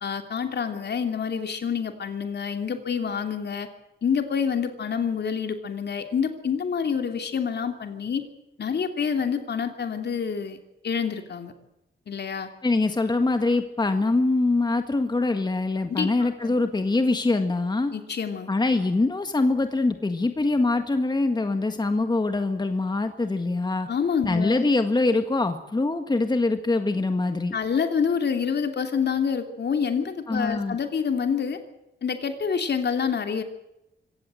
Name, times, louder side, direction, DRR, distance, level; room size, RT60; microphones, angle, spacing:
voice 1, 0.0-3.7 4.0-8.2 8.6-10.6 10.8-11.5 12.1-12.5 15.9-16.5 17.9-18.5 23.9-24.7 27.5-31.6 32.0-33.4, left 6 dB, 60° left, 6 dB, 3.0 m, -27 dB
voice 2, 12.6-17.9 18.5-23.9 24.2-27.6 30.3-30.8, left 2 dB, 20° left, 7 dB, 1.7 m, -24 dB
25.0 x 17.0 x 7.8 m, 0.89 s
wide cardioid pair, 130°, 20 cm